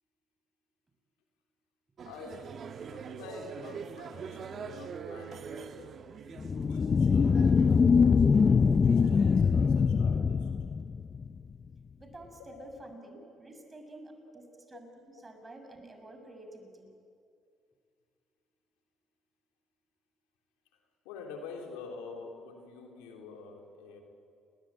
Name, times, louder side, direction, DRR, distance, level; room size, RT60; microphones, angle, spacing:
voice 1, 2.0-6.1 6.7-7.9 8.8-10.6 12.4-13.1 14.7-14.8 21.0-24.0, left 4 dB, 85° left, 1 dB, 3.7 m, -47 dB
sound 1, 2.0-9.8, right 6 dB, 55° right, 1.4 m, -45 dB
sound 2, 6.4-11.4, left 5 dB, 40° left, 0.7 m, -23 dB
voice 2, 12.0-16.9, right 1 dB, 25° right, 5 dB, 6.2 m, -49 dB
29.5 x 20.5 x 9.0 m, 2.4 s
supercardioid pair, 65°, 0 cm